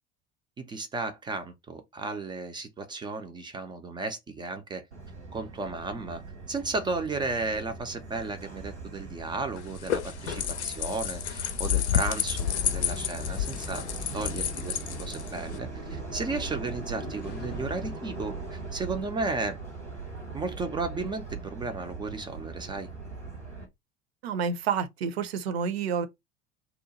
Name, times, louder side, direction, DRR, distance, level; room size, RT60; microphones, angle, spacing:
voice 1, 0.6-4.9 5.3-6.2 6.5-13.9 14.1-19.6 20.3-22.9, right 3 dB, 15° right, 0.3 m, -34 dB
Subway metro underground, 4.9-23.6, right 4 dB, 90° right, 1.2 m, -40 dB
sound 1, 9.6-15.6, left 10 dB, 75° left, 0.5 m, -30 dB
sound 2, 12.4-18.0, left 6 dB, 30° left, 0.6 m, -44 dB
voice 2, 24.2-26.1, right 6 dB, 65° right, 0.6 m, -29 dB
2.8 x 2.2 x 3.9 m
figure-of-eight pair, 70°, 34 cm